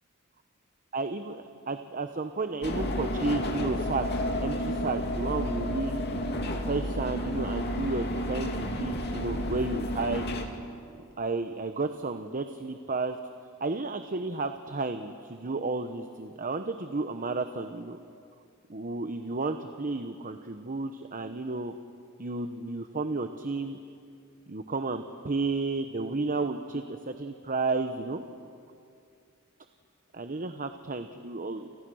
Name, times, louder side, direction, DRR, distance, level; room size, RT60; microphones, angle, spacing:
voice 1, 0.9-4.1 4.4-5.9 6.6-10.2 11.2-13.2 13.6-18.0 18.7-21.7 22.2-23.8 24.5-28.2 30.1-31.7, right 3 dB, 40° right, 8 dB, 1.0 m, -32 dB
sound 1, 2.6-10.5, left 1 dB, 50° left, 2.5 m, -31 dB
29.5 x 28.5 x 6.4 m, 2.5 s
head